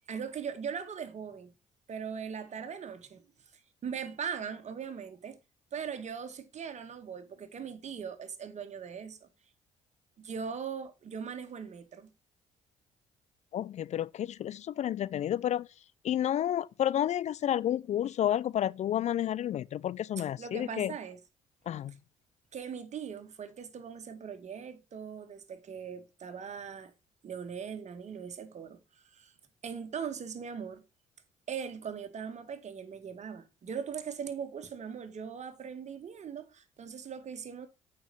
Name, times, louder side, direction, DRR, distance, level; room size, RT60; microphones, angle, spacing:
voice 1, 0.1-1.5 1.9-3.2 3.8-5.4 5.7-9.3 10.2-12.1 20.2-21.2 22.5-26.9 27.2-28.8 29.1-29.3 29.6-30.8 31.5-37.7, right 7 dB, 50° right, 2.0 m, -40 dB
voice 2, 13.5-15.7 16.0-20.9 21.7-21.9, left 11 dB, 50° left, 0.4 m, -30 dB
8.8 x 5.9 x 5.2 m
hypercardioid pair, 55°, 15 cm